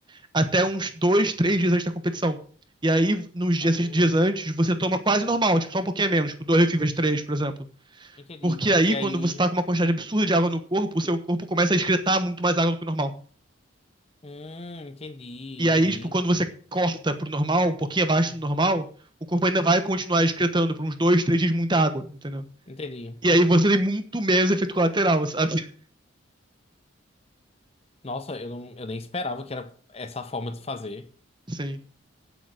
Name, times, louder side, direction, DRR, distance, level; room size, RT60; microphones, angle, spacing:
voice 1, 0.3-2.4 2.8-7.5 8.4-13.1 15.6-16.5 16.7-18.8 19.3-22.4 23.2-25.7 31.5-31.8, right 1 dB, 20° right, 1.1 m, -23 dB
voice 2, 3.6-4.3 8.2-9.4 14.2-16.1 18.3-18.7 22.7-23.2 28.0-31.1, left 2 dB, 30° left, 0.9 m, -36 dB
9.3 x 8.1 x 7.8 m
head